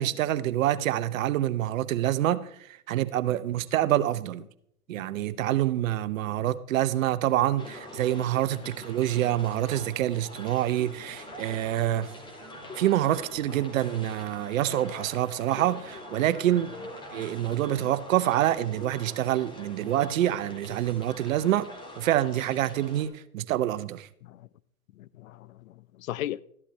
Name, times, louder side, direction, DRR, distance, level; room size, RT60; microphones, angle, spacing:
voice 1, 0.0-4.4 4.9-12.1 12.8-16.7 17.1-21.7 22.0-24.1, right 13 dB, 60° right, 0.8 m, -26 dB
sound 1, 7.6-23.1, left 1 dB, 10° left, 1.9 m, -44 dB
voice 2, 11.7-12.0 17.5-17.8 24.2-24.5 25.0-26.4, left 13 dB, 65° left, 0.6 m, -39 dB
13.5 x 11.0 x 3.2 m
hypercardioid pair, 110°, 45 cm